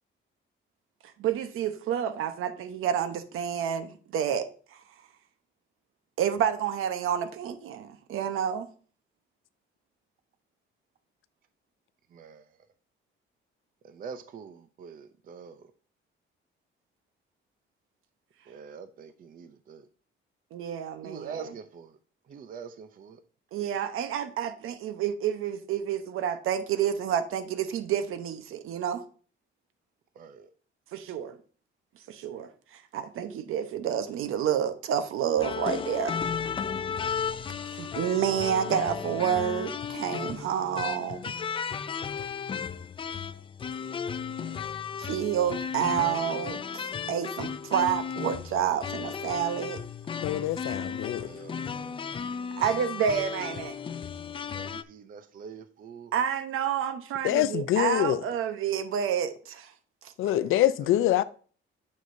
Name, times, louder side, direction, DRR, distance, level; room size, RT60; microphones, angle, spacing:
voice 1, 1.2-4.5 6.2-8.7 20.5-21.4 23.5-29.0 30.9-31.3 32.1-36.2 37.7-41.3 45.0-49.8 52.6-53.8 56.1-59.7 60.0-60.1, right 9 dB, 80° right, 0.9 m, -29 dB
voice 2, 12.1-12.6 13.8-15.7 18.5-19.9 21.0-22.0 22.3-23.2 30.1-30.5 50.8-52.0 54.5-56.1 60.8-61.2, right 6 dB, 40° right, 0.5 m, -45 dB
sound 1, 35.4-54.8, left 6 dB, 25° left, 0.4 m, -34 dB
voice 3, 50.2-51.3 57.2-58.2 60.2-61.2, left 13 dB, 80° left, 0.5 m, -25 dB
9.3 x 6.5 x 2.6 m
cardioid pair, 150°, 21 cm